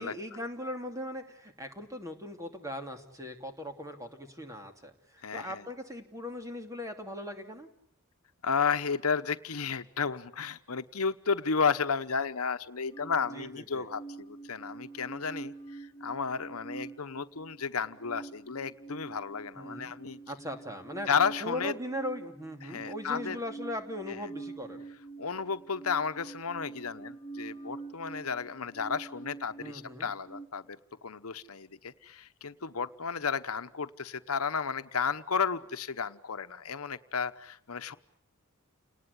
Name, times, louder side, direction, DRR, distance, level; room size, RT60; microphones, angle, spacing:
voice 1, 0.0-7.7 13.3-13.9 19.5-19.9 20.3-21.1 21.4-24.9 29.6-30.1, left 1 dB, 15° right, 5 dB, 2.8 m, -39 dB
voice 2, 5.2-5.6 8.4-20.2 21.1-21.7 22.6-23.4 25.2-30.8 31.0-37.9, left 5 dB, 85° left, 11 dB, 1.1 m, -33 dB
sound 1, 12.9-30.5, right 3 dB, 5° left, 7.0 m, -46 dB
29.5 x 19.5 x 9.9 m, 0.73 s
head